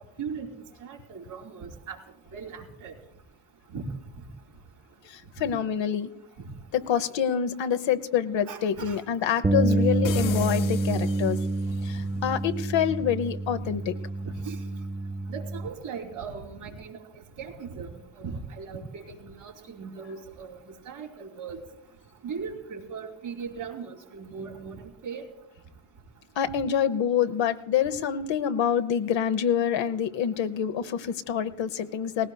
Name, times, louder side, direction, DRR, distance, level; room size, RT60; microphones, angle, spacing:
voice 1, 0.8-2.0 2.3-2.9 3.7-3.9 5.4-5.5 8.5-9.0 12.0-12.1 14.4-14.6 15.3-17.0 17.4-21.6 22.2-24.8 25.0-25.3, right 5 dB, 85° right, -1 dB, 2.9 m, -38 dB
voice 2, 5.0-6.1 6.9-11.4 11.8-14.0 26.4-32.3, left 8 dB, 65° left, 10 dB, 1.0 m, -26 dB
Bass guitar, 9.4-15.7, right 2 dB, 10° right, 0.5 m, -28 dB
sound 1, 10.0-11.9, left 11 dB, 45° left, 0.5 m, -37 dB
19.0 x 17.0 x 2.3 m, 0.85 s
hypercardioid pair, 50°, 49 cm